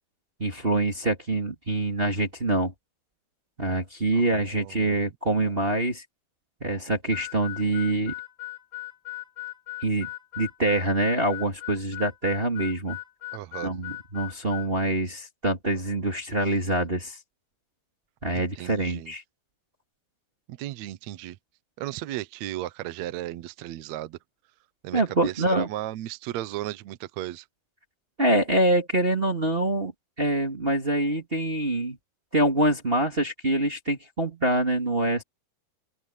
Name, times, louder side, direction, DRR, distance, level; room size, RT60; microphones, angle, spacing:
voice 1, 0.4-2.7 3.6-6.0 6.6-8.1 9.8-10.1 10.4-13.0 13.6-17.2 18.2-19.2 24.9-25.7 28.2-29.9 30.2-32.0 32.3-35.2, right 1 dB, 20° right, 1.8 m, -25 dB
voice 2, 4.1-5.0 13.3-13.7 18.3-19.1 20.5-21.4 21.8-24.2 24.8-27.4, right 14 dB, 75° right, 1.6 m, -35 dB
Harmonica, 7.1-14.7, left 20 dB, 25° left, 5.5 m, -38 dB
open air
omnidirectional pair, 4.4 m